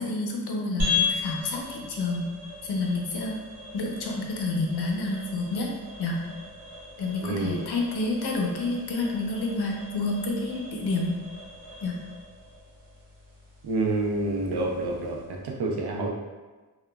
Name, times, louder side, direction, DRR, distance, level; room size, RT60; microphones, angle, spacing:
voice 1, 0.0-2.3 2.6-3.4 3.7-5.7 6.0-6.2 7.0-11.2 11.8-12.0, left 2 dB, 85° left, 0 dB, 0.6 m, -29 dB
sound 1, 0.8-15.4, left 5 dB, 65° right, 0.9 m, -37 dB
voice 2, 7.2-7.6 13.6-16.1, right 2 dB, 85° right, -1 dB, 0.5 m, -28 dB
2.9 x 2.2 x 2.2 m, 1.3 s
wide cardioid pair, 125°, 38 cm